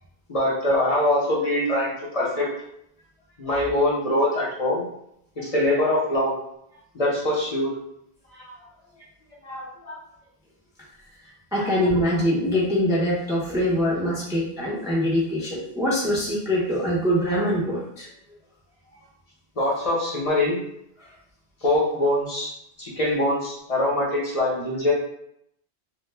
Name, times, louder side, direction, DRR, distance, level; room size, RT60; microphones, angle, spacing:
voice 1, 0.3-2.5 3.4-4.9 5.4-6.4 6.9-7.7 8.4-8.5 9.4-10.0 11.5-11.7 19.6-20.6 21.6-22.5 22.8-24.9, left 1 dB, 40° left, -5 dB, 0.7 m, -23 dB
voice 2, 11.5-18.1, equal, 5° right, -7 dB, 0.4 m, -23 dB
2.1 x 2.1 x 3.2 m, 0.75 s
omnidirectional pair, 1.1 m